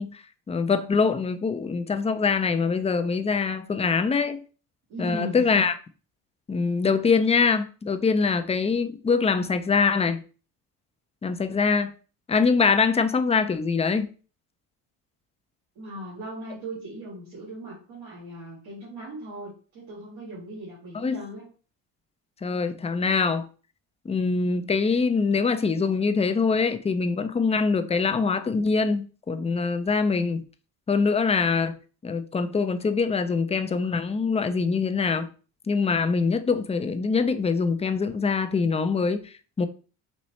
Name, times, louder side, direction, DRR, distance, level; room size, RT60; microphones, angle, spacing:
voice 1, 0.0-4.4 5.0-5.7 6.5-10.2 11.2-11.9 12.3-14.1 20.9-21.2 22.4-23.5 24.1-30.4 30.9-31.8 32.0-35.3 35.7-39.7, left 5 dB, 15° left, 0.4 m, -24 dB
voice 2, 4.9-5.7 15.8-21.5, right 1 dB, 80° right, 1.8 m, -38 dB
4.2 x 3.0 x 3.1 m
supercardioid pair, 60°, 46 cm